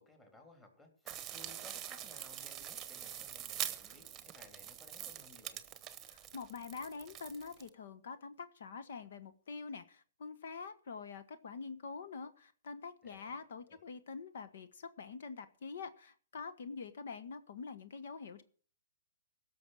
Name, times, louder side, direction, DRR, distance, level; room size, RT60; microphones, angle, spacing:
voice 1, 0.0-5.6 13.0-13.4 13.7-13.8, left 2 dB, 15° left, 3 dB, 3.4 m, -60 dB
sound 1, 1.1-7.7, right 11 dB, 20° right, 1.1 m, -44 dB
voice 2, 6.0-18.4, left 5 dB, 55° left, 11 dB, 1.3 m, -46 dB
17.0 x 6.6 x 6.3 m, 0.44 s
figure-of-eight pair, 130°, 0 cm